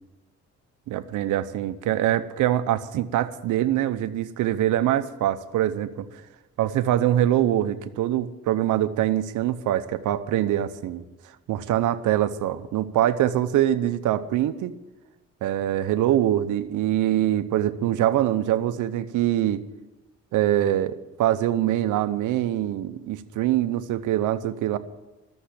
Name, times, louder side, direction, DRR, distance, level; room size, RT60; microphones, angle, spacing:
voice 1, 0.9-6.0 6.6-11.0 11.5-14.7 15.4-19.6 20.3-24.8, right 12 dB, 80° right, 11 dB, 0.8 m, -24 dB
12.5 x 7.1 x 10.0 m, 1.1 s
cardioid pair, 90°, 30 cm